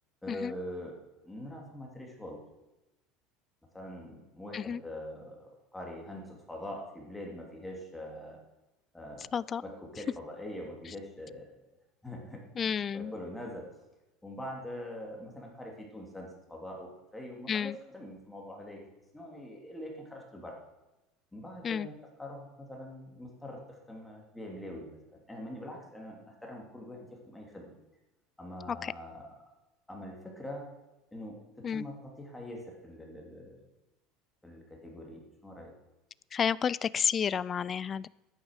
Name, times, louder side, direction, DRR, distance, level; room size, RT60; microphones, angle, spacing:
voice 1, 0.2-1.0 1.2-2.4 3.7-8.4 8.9-9.3 9.6-11.5 12.0-13.7 14.2-18.8 19.1-20.6 21.3-21.9 22.2-25.0 25.3-27.7 28.4-29.3 29.9-30.7 31.1-33.6 34.4-35.7, left 1 dB, 5° left, 0 dB, 3.0 m, -43 dB
voice 2, 12.6-13.1 17.5-17.8 21.6-21.9 28.8-28.9 31.6-31.8 36.3-38.1, left 7 dB, 30° left, 21 dB, 0.3 m, -31 dB
11.0 x 9.6 x 6.6 m, 1.0 s
supercardioid pair, 135°, 0 cm